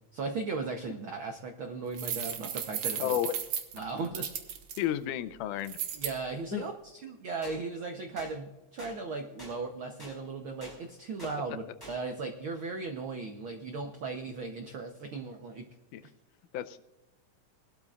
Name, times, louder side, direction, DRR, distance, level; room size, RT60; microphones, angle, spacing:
voice 1, 0.1-3.2 3.7-4.3 6.0-15.7, right 4 dB, 85° right, 5 dB, 1.1 m, -37 dB
sound 1, 1.9-4.8 5.7-6.1, right 8 dB, 60° right, 1.9 m, -35 dB
voice 2, 3.0-3.3 4.8-5.8 6.5-6.6 15.9-16.0 16.5-16.8, left 11 dB, 85° left, 12 dB, 2.1 m, -31 dB
sound 2, 7.4-7.6 8.2-8.3 8.8-8.9 9.4-9.5 10.0-10.1 10.6-10.8 11.2-11.3 11.8-12.0, equal, 5° left, 5.0 m, -46 dB
20.5 x 12.5 x 2.4 m, 1.1 s
omnidirectional pair, 3.6 m